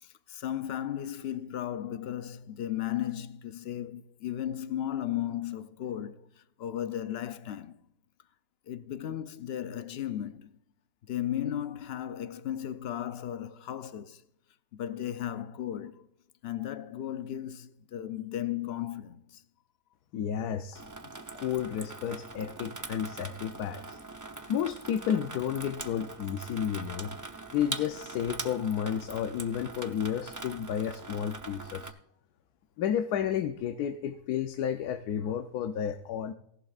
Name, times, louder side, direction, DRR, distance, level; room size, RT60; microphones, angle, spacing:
voice 1, 0.0-7.8 8.7-10.5 11.0-14.2 14.7-16.1 16.4-19.4, left 11 dB, 65° left, 0.6 m, -35 dB
voice 2, 20.1-20.8 21.3-24.0 24.5-27.1 27.5-31.9 32.8-36.3, left 9 dB, 85° left, 1.2 m, -31 dB
Water tap faucet / Sink (filling or washing), 20.7-31.9, right 3 dB, 30° right, 0.3 m, -42 dB
17.5 x 11.5 x 2.4 m
omnidirectional pair, 1.6 m